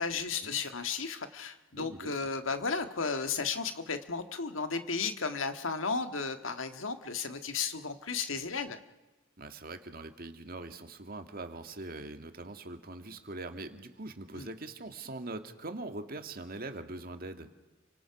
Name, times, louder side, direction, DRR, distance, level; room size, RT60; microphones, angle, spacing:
voice 1, 0.0-8.8 14.3-14.5, left 5 dB, 85° left, 8 dB, 1.7 m, -34 dB
voice 2, 1.7-2.2 9.4-17.5, right 2 dB, 50° right, 7 dB, 2.0 m, -42 dB
30.0 x 25.5 x 6.0 m, 1.1 s
head